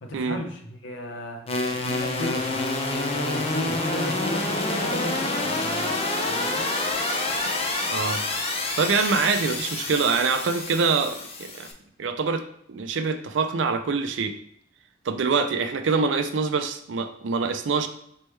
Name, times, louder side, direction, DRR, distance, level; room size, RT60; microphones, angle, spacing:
voice 1, 0.0-2.6 3.1-6.0 6.3-6.7, left 1 dB, 70° left, 3 dB, 0.7 m, -35 dB
sound 1, 1.5-11.7, left 2 dB, 30° left, 0.5 m, -27 dB
voice 2, 8.8-11.7 12.0-12.4 12.7-14.3 15.0-17.9, right 4 dB, 70° right, 8 dB, 0.4 m, -25 dB
4.3 x 3.3 x 3.2 m, 0.71 s
head